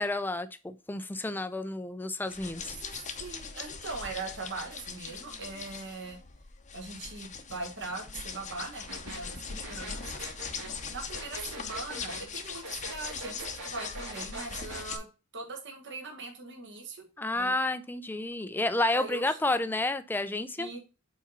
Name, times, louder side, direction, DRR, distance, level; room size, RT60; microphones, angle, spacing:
voice 1, 0.0-2.8 17.2-20.7, left 2 dB, 10° left, 11 dB, 0.4 m, -30 dB
sound 1, 2.3-15.0, left 5 dB, 35° left, 0.7 m, -41 dB
voice 2, 2.6-6.2 6.7-10.2 10.9-15.1 15.3-17.1 17.3-17.5 18.9-19.4 20.6-20.8, right 3 dB, 55° right, 1 dB, 1.6 m, -41 dB
sound 2, 8.9-14.9, right 2 dB, 85° right, 2.1 m, -43 dB
4.9 x 4.1 x 5.4 m, 0.30 s
head